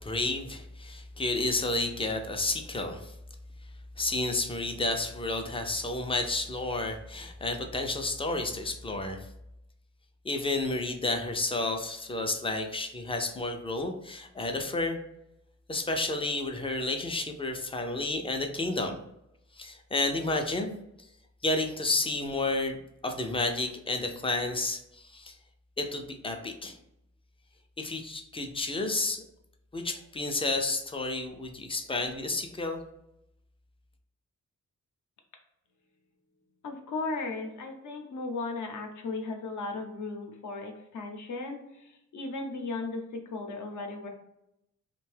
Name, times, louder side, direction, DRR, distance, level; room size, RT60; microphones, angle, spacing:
voice 1, 0.0-3.2 4.0-9.3 10.2-15.0 15.7-19.0 19.5-20.8 21.4-22.8 23.0-25.4 25.8-26.8 27.8-29.2 29.7-32.8, left 2 dB, 20° left, 4 dB, 0.3 m, -31 dB
voice 2, 36.6-44.1, left 3 dB, 75° left, 3 dB, 0.6 m, -36 dB
2.6 x 2.2 x 3.2 m, 0.84 s
wide cardioid pair, 115°, 30 cm